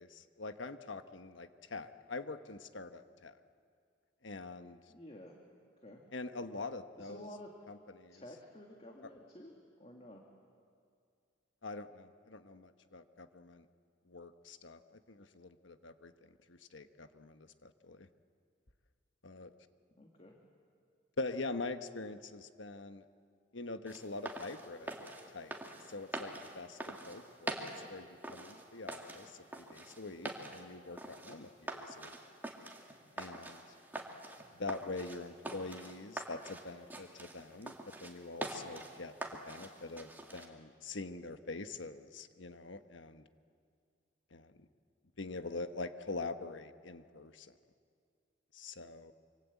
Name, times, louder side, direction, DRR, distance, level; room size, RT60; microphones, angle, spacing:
voice 1, 0.0-3.4 4.2-4.8 6.1-7.3 7.7-8.2 11.6-13.6 14.0-18.1 19.2-19.5 21.2-23.1 23.5-24.9 25.3-25.5 25.9-27.6 27.9-32.2 33.2-33.6 34.6-43.3 44.3-44.7 45.2-47.5 48.5-49.1, left 3 dB, 80° left, 9 dB, 1.2 m, -44 dB
voice 2, 4.9-5.4 5.8-6.0 7.0-7.6 8.1-9.5 9.8-10.2 20.0-20.4, left 1 dB, 30° left, 0 dB, 2.2 m, -51 dB
sound 1, 23.9-40.5, right 1 dB, 10° right, 2.1 m, -45 dB
26.5 x 25.0 x 8.4 m, 2.2 s
head